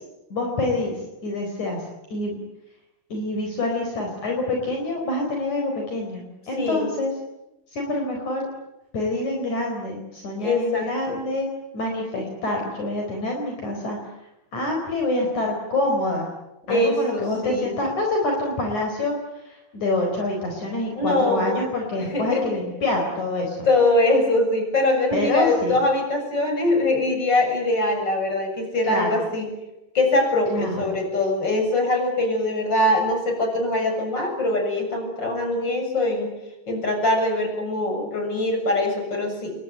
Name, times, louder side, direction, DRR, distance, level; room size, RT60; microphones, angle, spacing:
voice 1, 0.3-1.0 1.2-1.8 2.1-2.4 3.1-7.1 7.7-8.5 8.9-11.5 11.7-14.0 14.5-16.3 16.7-23.7 25.1-25.8 28.9-29.1 30.5-31.0, left 2 dB, 55° left, 2 dB, 5.8 m, -26 dB
voice 2, 6.5-6.9 10.4-11.2 16.7-17.7 21.0-21.6 22.0-22.6 23.6-29.5 29.9-36.3 36.7-39.6, left 2 dB, 30° left, 4 dB, 7.6 m, -22 dB
29.0 x 22.5 x 9.0 m, 0.94 s
omnidirectional pair, 3.9 m